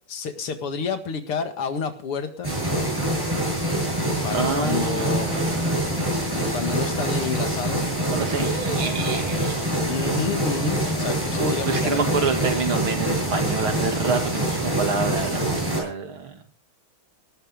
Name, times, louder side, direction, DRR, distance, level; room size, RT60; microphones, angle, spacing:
voice 1, 0.1-2.6 4.2-5.3 6.5-7.8 9.8-12.3, left 5 dB, 80° left, 8 dB, 2.8 m, -29 dB
sound 1, 2.4-15.8, right 1 dB, 10° right, 7.5 m, -25 dB
voice 2, 4.3-5.8 8.1-9.6 11.4-15.4 15.7-16.4, right 4 dB, 70° right, 5 dB, 3.2 m, -27 dB
19.0 x 13.5 x 3.7 m, 0.42 s
omnidirectional pair, 2.4 m